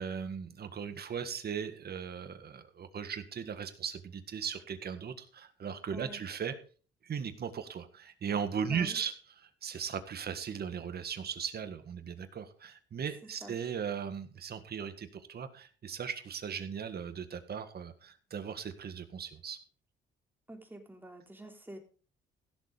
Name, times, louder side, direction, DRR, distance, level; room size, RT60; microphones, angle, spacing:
voice 1, 0.0-6.5 7.0-9.1 9.6-19.6, right 7 dB, 55° right, 10 dB, 1.8 m, -38 dB
voice 2, 5.9-6.2 8.7-9.0 13.4-13.5 20.5-21.8, right 1 dB, 10° right, 3 dB, 3.6 m, -47 dB
16.0 x 7.1 x 5.1 m, 0.41 s
cardioid pair, 90°, 20 cm